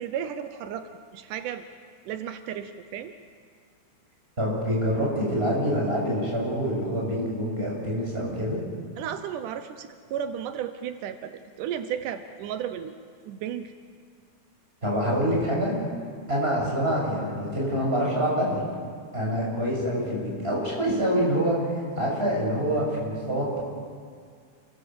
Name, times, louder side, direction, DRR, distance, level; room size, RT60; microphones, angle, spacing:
voice 1, 0.0-1.6 2.1-3.1 9.0-11.3 11.6-13.0 13.3-13.7, right 9 dB, 85° right, 9 dB, 2.4 m, -34 dB
voice 2, 4.4-8.6 14.8-15.8 16.3-18.6 19.1-23.6, equal, 15° right, -3 dB, 7.6 m, -26 dB
29.0 x 20.5 x 7.9 m, 2.1 s
omnidirectional pair, 3.6 m